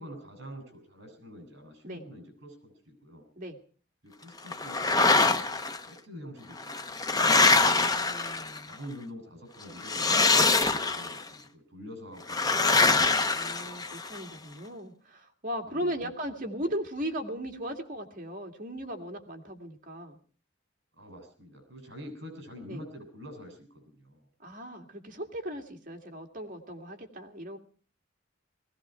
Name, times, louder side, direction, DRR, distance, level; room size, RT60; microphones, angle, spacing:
voice 1, 0.0-3.2 4.0-7.1 8.7-13.1 15.7-16.1 21.0-24.3, equal, 60° right, 6 dB, 7.2 m, -46 dB
sound 1, 4.5-5.8 6.6-8.7 9.8-11.2 12.3-14.2, left 3 dB, 20° left, 0.8 m, -24 dB
voice 2, 7.3-8.7 12.8-13.0 13.3-20.2 22.7-22.8 24.4-27.6, equal, 40° right, 3 dB, 2.4 m, -37 dB
19.5 x 16.5 x 4.5 m, 0.41 s
head